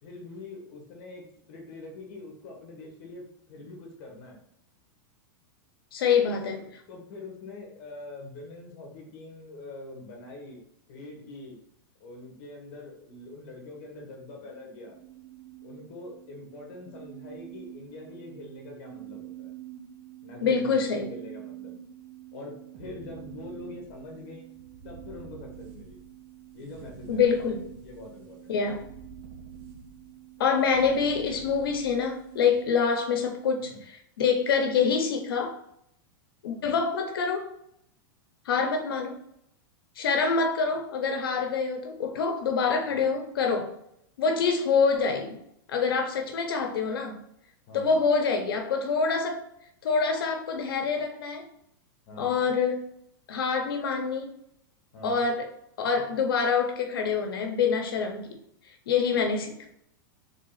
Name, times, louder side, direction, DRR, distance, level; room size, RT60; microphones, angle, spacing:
voice 1, 0.0-3.2 3.5-4.5 6.2-10.6 10.9-11.6 12.0-15.0 15.6-19.5 20.2-21.7 22.3-24.5 24.8-26.0 26.5-27.2 27.8-28.6 33.6-33.8 36.7-36.8 42.9-43.1 47.7-48.0 52.1-52.3 54.9-55.2 59.1-59.2, left 2 dB, 40° left, 0 dB, 1.4 m, -44 dB
voice 2, 5.9-6.6 20.4-21.1 27.1-27.6 28.5-28.8 30.4-35.6 36.4-37.5 38.4-39.2 40.0-43.7 44.2-45.4 45.7-47.2 47.7-49.4 49.8-51.5 52.2-52.9 53.3-54.3 55.0-55.5 55.8-58.4 58.6-59.7, left 5 dB, 80° left, 4 dB, 0.9 m, -26 dB
sound 1, 13.7-32.7, right 10 dB, 35° right, 0.5 m, -46 dB
3.7 x 3.6 x 4.0 m, 0.73 s
supercardioid pair, 165°, 12 cm